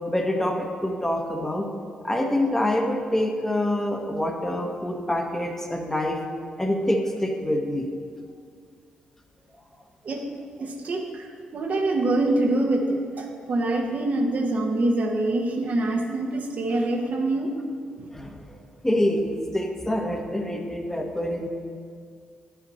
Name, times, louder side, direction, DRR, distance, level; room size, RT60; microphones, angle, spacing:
voice 1, 0.1-1.7 2.0-6.2 6.6-7.9 18.1-18.5 18.8-21.5, left 1 dB, 10° left, 2 dB, 1.1 m, -26 dB
voice 2, 10.6-11.3 11.5-17.5 18.0-18.1, right 2 dB, 55° right, 2 dB, 1.0 m, -25 dB
9.5 x 5.9 x 4.2 m, 2.1 s
hypercardioid pair, 45°, 3 cm